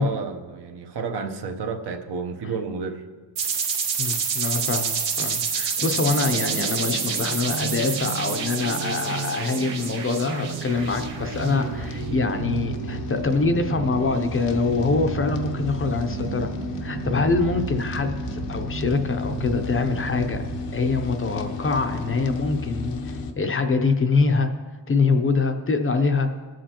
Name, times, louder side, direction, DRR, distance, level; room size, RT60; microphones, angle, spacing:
voice 1, 0.0-3.0, right 5 dB, 65° right, 5 dB, 0.9 m, -31 dB
sound 1, 3.4-11.9, right 6 dB, 80° right, 1.3 m, -28 dB
sound 2, 3.9-23.3, left 3 dB, 80° left, 0.9 m, -35 dB
voice 2, 4.0-16.5 16.8-20.4 20.7-24.5 24.9-26.3, left 4 dB, 30° left, 6 dB, 0.6 m, -24 dB
sound 3, 5.8-20.7, right 6 dB, 40° right, 0.5 m, -34 dB
18.5 x 7.5 x 2.9 m, 1.4 s
wide cardioid pair, 160°, 43 cm